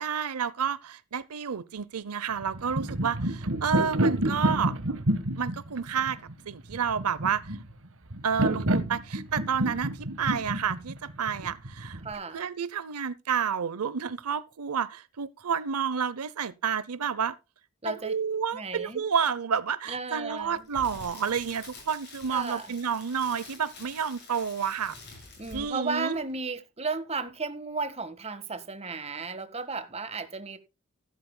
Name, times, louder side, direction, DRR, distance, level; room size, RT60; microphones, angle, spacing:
voice 1, 0.0-4.7 5.4-6.2 6.5-7.6 8.2-12.0 12.3-17.4 17.8-24.9 25.5-26.2, right 7 dB, 85° right, 0.7 m, -30 dB
sound 1, 2.4-12.1, right 1 dB, 60° right, 1.4 m, -29 dB
voice 2, 12.0-12.4 17.8-18.1 18.5-19.0 19.9-20.7 22.3-22.7 25.4-30.6, right 4 dB, 30° right, 1.6 m, -34 dB
Crackle, 20.4-25.9 26.1-26.3, left 3 dB, 50° left, 6.9 m, -47 dB
15.0 x 12.5 x 2.2 m
head